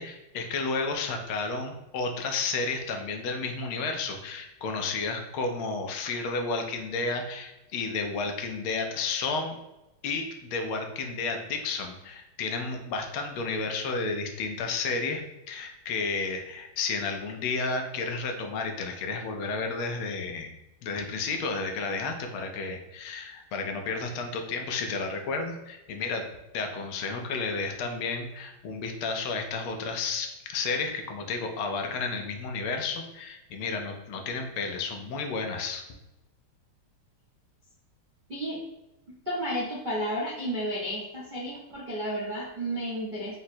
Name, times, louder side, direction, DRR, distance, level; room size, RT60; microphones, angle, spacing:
voice 1, 0.0-9.6 10.0-15.2 15.5-20.5 20.8-26.2 26.5-35.8, left 4 dB, 80° left, 4 dB, 1.5 m, -32 dB
voice 2, 39.2-43.4, equal, 55° right, -7 dB, 0.5 m, -32 dB
4.9 x 2.0 x 4.2 m, 0.96 s
omnidirectional pair, 2.3 m